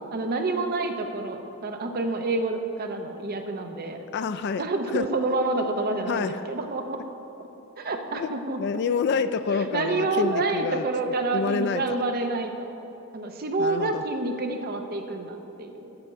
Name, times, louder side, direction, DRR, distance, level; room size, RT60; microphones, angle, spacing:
voice 1, 0.1-4.0 4.6-7.0 7.8-8.6 9.6-12.7 13.1-16.0, right 3 dB, 45° right, 5 dB, 0.7 m, -28 dB
voice 2, 4.1-4.6 4.9-5.1 6.1-6.4 8.2-8.3 8.6-10.8 11.3-11.8 13.6-14.0, left 5 dB, 50° left, 11 dB, 0.3 m, -27 dB
7.8 x 5.7 x 7.3 m, 3.0 s
head